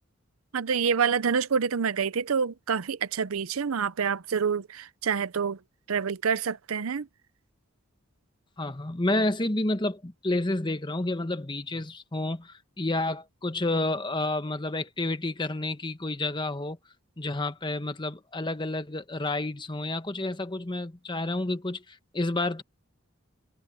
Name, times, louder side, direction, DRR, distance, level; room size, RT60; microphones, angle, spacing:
voice 1, 0.5-5.6 5.9-7.1, right 6 dB, 85° right, 0.6 m, -27 dB
voice 2, 8.6-16.8 17.2-22.6, left 2 dB, 20° left, 1.1 m, -30 dB
head